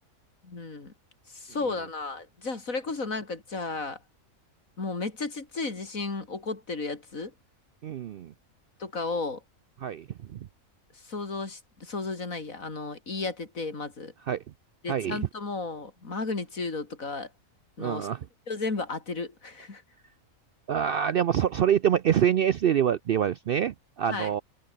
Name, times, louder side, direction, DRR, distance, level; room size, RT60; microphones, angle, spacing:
voice 1, 0.4-0.9 1.3-4.0 4.8-7.3 8.8-9.4 11.0-14.1 14.8-17.3 17.8-18.1 18.5-19.8 24.1-24.3, left 3 dB, 75° left, 3.7 m, -33 dB
voice 2, 7.8-8.3 9.8-10.4 14.3-14.4 14.9-15.2 17.8-18.2 20.7-24.4, right 9 dB, 65° right, 0.6 m, -26 dB
omnidirectional pair, 1.4 m